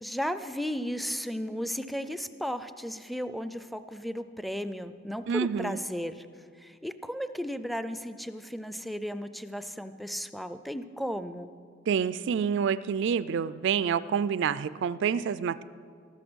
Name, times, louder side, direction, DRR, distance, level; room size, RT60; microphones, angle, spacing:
voice 1, 0.0-6.3 6.6-11.5, equal, ahead, 11 dB, 0.4 m, -35 dB
voice 2, 5.3-5.8 11.9-15.6, right 7 dB, 65° right, 16 dB, 0.3 m, -28 dB
14.0 x 13.5 x 6.2 m, 2.2 s
head